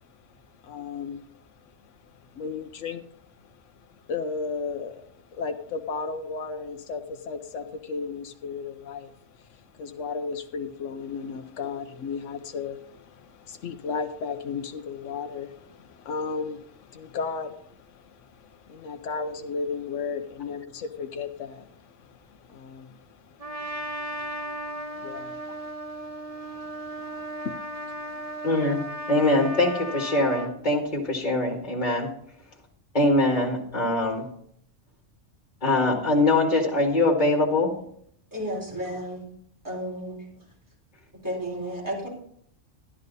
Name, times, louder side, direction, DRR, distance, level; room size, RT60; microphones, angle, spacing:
voice 1, 0.1-1.4 1.8-25.7 26.3-28.5, left 5 dB, 80° left, 7 dB, 1.1 m, -36 dB
Trumpet, 23.4-30.5, right 1 dB, 30° right, 1.3 m, -35 dB
voice 2, 28.4-28.8 29.1-32.1 32.9-34.2 35.6-37.7, left 2 dB, 40° left, 0 dB, 1.9 m, -23 dB
voice 3, 38.3-39.2 39.6-40.3 41.2-42.1, equal, 15° right, -4 dB, 4.3 m, -32 dB
12.5 x 11.0 x 4.0 m, 0.66 s
omnidirectional pair, 1.3 m